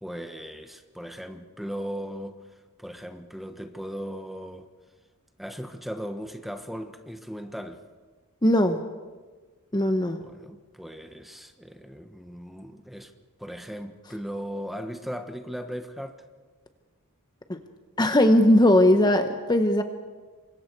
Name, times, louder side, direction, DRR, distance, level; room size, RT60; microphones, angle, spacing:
voice 1, 0.0-4.7 5.4-7.8 10.2-13.1 13.4-16.2, equal, ahead, 7 dB, 1.2 m, -37 dB
voice 2, 8.4-8.8 9.7-10.2 17.5-17.6 18.0-19.8, left 1 dB, 20° left, 6 dB, 1.0 m, -19 dB
28.0 x 24.5 x 4.7 m, 1.3 s
head